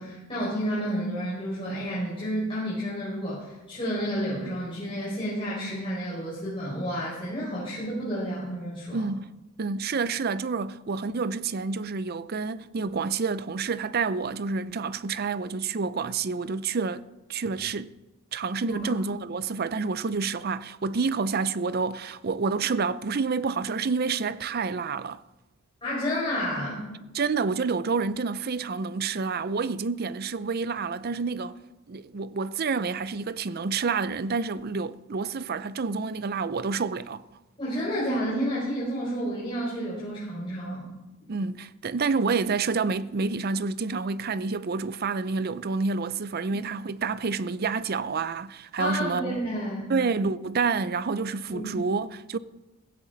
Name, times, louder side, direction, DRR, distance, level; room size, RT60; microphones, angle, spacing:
voice 1, 0.0-9.0 18.7-18.8 25.8-26.8 37.6-40.9 46.5-46.7 48.8-49.9 51.5-51.7, equal, 25° left, 5.2 m, -30 dB
voice 2, 8.9-9.3 9.6-17.0 17.3-18.0 18.3-25.2 27.1-31.5 31.9-37.2 41.3-49.4 49.9-52.4, right 4 dB, 50° right, 0.5 m, -28 dB
16.5 x 15.5 x 4.0 m
head